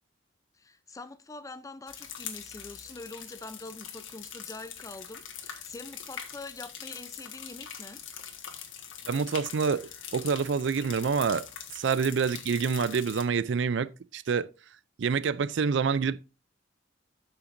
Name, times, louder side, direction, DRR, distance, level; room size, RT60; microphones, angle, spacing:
voice 1, 0.6-8.0, left 2 dB, 15° left, 0.5 m, -44 dB
sound 1, 1.9-13.2, left 8 dB, 90° left, 1.6 m, -43 dB
voice 2, 9.1-11.4 11.7-14.5 15.0-16.2, right 5 dB, 65° right, 0.4 m, -27 dB
13.0 x 5.8 x 2.6 m
head